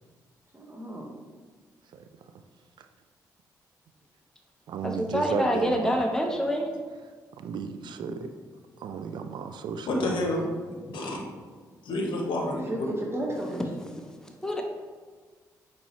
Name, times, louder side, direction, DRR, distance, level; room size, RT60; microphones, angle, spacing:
voice 1, 0.5-1.1 8.0-8.1 12.4-13.6 14.4-14.6, right 1 dB, 30° right, -1 dB, 0.9 m, -34 dB
voice 2, 1.9-2.3 2.8-2.9 4.7-6.0 7.4-8.3 8.8-10.5, right 6 dB, 65° right, 9 dB, 0.4 m, -34 dB
voice 3, 4.8-6.7 13.4-14.0 14.4-14.6, equal, 5° left, 2 dB, 0.7 m, -27 dB
voice 4, 9.9-10.4 10.9-11.2 11.8-12.9, left 2 dB, 70° left, 0 dB, 0.8 m, -29 dB
5.3 x 2.9 x 3.0 m, 1.5 s
hypercardioid pair, 45°, 8 cm